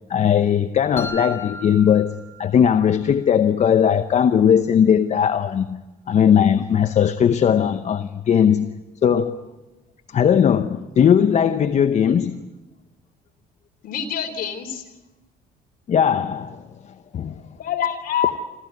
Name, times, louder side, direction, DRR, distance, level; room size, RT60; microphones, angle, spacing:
voice 1, 0.1-5.8 6.1-9.5 10.1-12.4 15.9-16.6 17.1-17.4, left 8 dB, 45° left, 0.8 m, -18 dB
sound 1, 1.0-3.0, equal, 15° left, 3.2 m, -35 dB
voice 2, 13.8-14.8 17.6-18.4, left 8 dB, 60° left, 3.8 m, -25 dB
27.0 x 14.5 x 9.4 m
cardioid pair, 110°, 17 cm